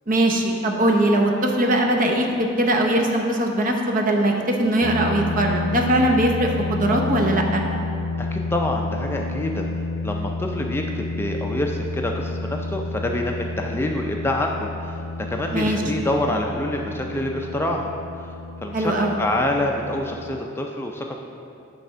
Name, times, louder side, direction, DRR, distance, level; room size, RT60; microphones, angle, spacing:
voice 1, 0.1-7.6 15.5-15.8 18.7-19.2, right 1 dB, 45° right, 2 dB, 0.8 m, -20 dB
sound 1, 4.8-20.4, left 2 dB, 90° left, 0.4 m, -30 dB
voice 2, 8.2-9.7 10.0-15.0 15.3-17.9 18.6-21.2, left 1 dB, 10° left, 1 dB, 0.4 m, -26 dB
9.0 x 3.4 x 5.5 m, 2.5 s
head